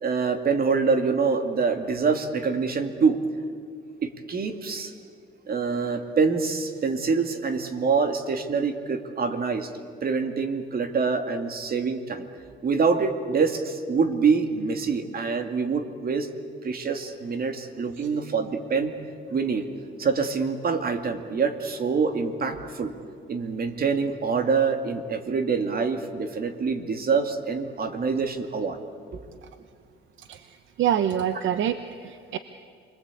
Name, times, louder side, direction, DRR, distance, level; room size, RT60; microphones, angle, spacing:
voice 1, 0.0-3.2 4.0-4.9 5.5-9.7 10.0-12.2 12.6-16.3 16.6-18.9 19.3-19.7 20.0-22.9 23.3-28.8 29.1-29.2, right 5 dB, 50° right, 7 dB, 2.3 m, -25 dB
voice 2, 30.8-32.4, right 10 dB, 75° right, 10 dB, 1.0 m, -26 dB
28.5 x 21.5 x 8.4 m, 2.2 s
cardioid pair, 90°, 20 cm